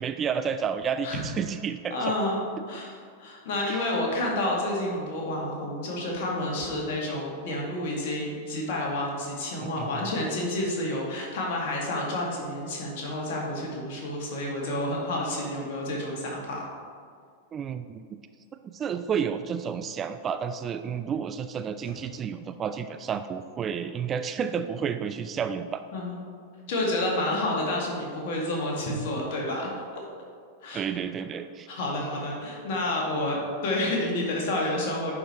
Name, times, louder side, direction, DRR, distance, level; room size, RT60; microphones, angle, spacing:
voice 1, 0.0-2.1 3.7-3.8 9.6-10.0 17.5-18.2 18.6-25.8 30.7-31.7, right 7 dB, 25° right, 9 dB, 0.3 m, -31 dB
voice 2, 1.9-2.4 2.7-16.6 25.9-26.2 26.7-29.7 30.6-30.8 31.7-35.1, left 1 dB, 50° left, -2 dB, 2.2 m, -29 dB
10.5 x 5.0 x 4.5 m, 2.1 s
figure-of-eight pair, 90°, 0 cm